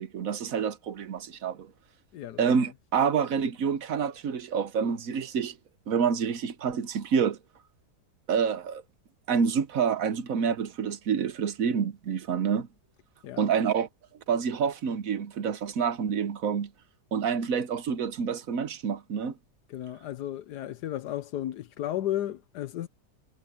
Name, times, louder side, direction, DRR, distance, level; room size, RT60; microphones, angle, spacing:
voice 1, 0.0-1.7 2.4-5.6 5.9-7.4 8.3-8.8 9.3-12.7 13.4-13.9 14.3-16.7 17.1-19.4, right 6 dB, 60° right, 1.3 m, -27 dB
voice 2, 2.1-2.6 13.2-13.5 19.7-22.9, left 12 dB, 85° left, 1.4 m, -34 dB
omnidirectional pair, 1.7 m